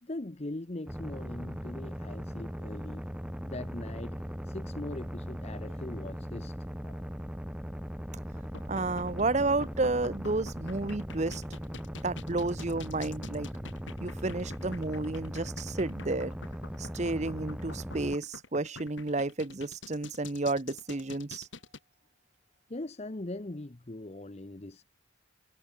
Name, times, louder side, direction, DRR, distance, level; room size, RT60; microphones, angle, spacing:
voice 1, 0.0-3.1 3.4-6.6 6.8-7.0 22.7-24.8, left 2 dB, 35° left, 0.8 m, -41 dB
sound 1, 0.9-18.2, equal, 5° right, 4.5 m, -39 dB
sound 2, 8.4-21.8, left 3 dB, 75° left, 3.6 m, -46 dB
voice 2, 8.7-11.4 12.0-13.5 14.0-16.3 16.8-21.5, right 2 dB, 35° right, 0.8 m, -31 dB
head